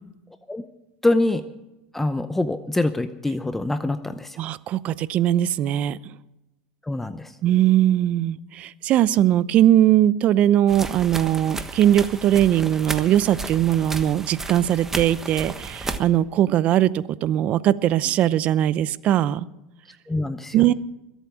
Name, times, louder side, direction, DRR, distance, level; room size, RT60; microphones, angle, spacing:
voice 1, 1.0-1.4 1.9-4.4 6.8-7.3 20.1-20.7, left 2 dB, 10° left, 11 dB, 0.7 m, -25 dB
voice 2, 4.4-6.0 7.4-19.5 20.5-20.7, right 12 dB, 45° right, 18 dB, 0.6 m, -20 dB
sound 1, 10.7-16.0, right 3 dB, 15° right, 1.3 m, -33 dB
21.5 x 8.2 x 6.3 m, 0.95 s
supercardioid pair, 115°, 3 cm